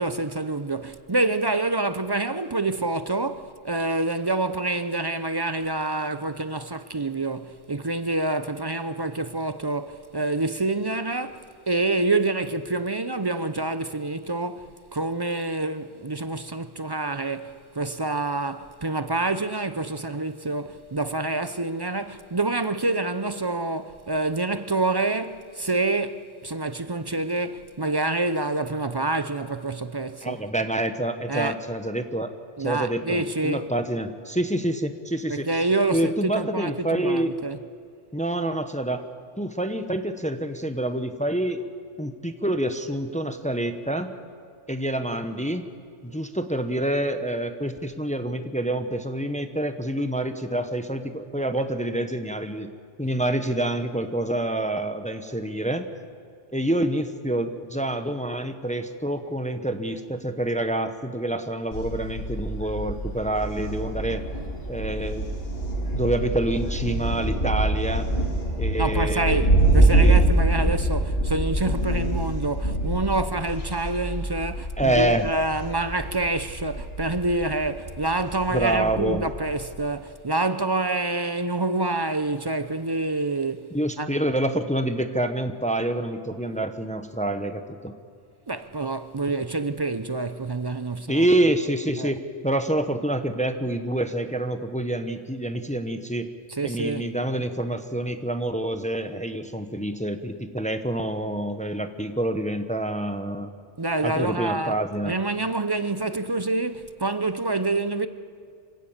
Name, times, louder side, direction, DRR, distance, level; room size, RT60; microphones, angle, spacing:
voice 1, 0.0-30.4 31.3-31.6 32.6-33.7 35.3-37.6 68.8-84.1 88.5-91.3 92.0-92.1 96.6-97.1 103.8-104.8 105.0-108.1, right 2 dB, 30° right, 0.4 m, -27 dB
voice 2, 30.2-32.3 32.6-35.5 35.9-37.3 38.1-39.0 39.4-41.6 42.0-44.1 44.7-45.6 46.0-52.7 53.0-55.8 56.5-64.2 64.7-65.3 65.9-68.1 68.6-69.4 69.9-70.3 70.6-70.7 74.8-75.3 78.5-79.2 83.7-87.9 91.1-96.3 96.6-103.5 104.0-105.2, right 1 dB, 5° left, 0.9 m, -27 dB
Thunder, 61.7-79.8, right 1 dB, 55° left, 2.9 m, -25 dB
26.5 x 17.0 x 7.3 m
omnidirectional pair, 1.2 m